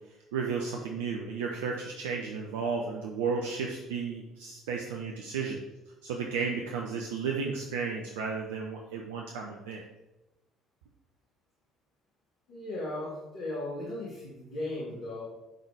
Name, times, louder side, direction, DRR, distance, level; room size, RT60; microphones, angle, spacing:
voice 1, 0.3-5.6 6.0-9.8, right 5 dB, 70° right, 1 dB, 0.6 m, -33 dB
voice 2, 12.5-15.2, left 1 dB, 65° left, -8 dB, 2.3 m, -36 dB
10.0 x 4.0 x 3.4 m, 0.98 s
figure-of-eight pair, 50°, 0 cm